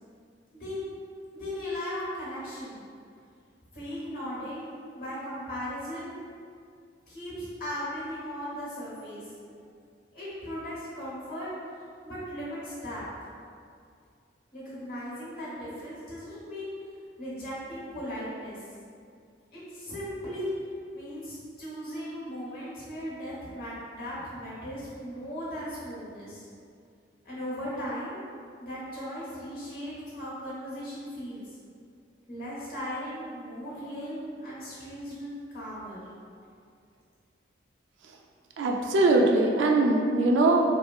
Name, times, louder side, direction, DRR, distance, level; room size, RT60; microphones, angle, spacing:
voice 1, 1.3-2.8 3.7-6.2 7.1-9.3 10.1-11.5 12.0-13.0 14.5-16.7 17.2-18.6 19.5-20.5 20.9-26.5 27.2-28.2 28.6-31.6 32.3-36.5, equal, 50° left, -9 dB, 1.0 m, -37 dB
voice 2, 38.6-40.6, right 2 dB, 80° right, 1 dB, 0.3 m, -22 dB
3.1 x 2.2 x 2.3 m, 2.3 s
head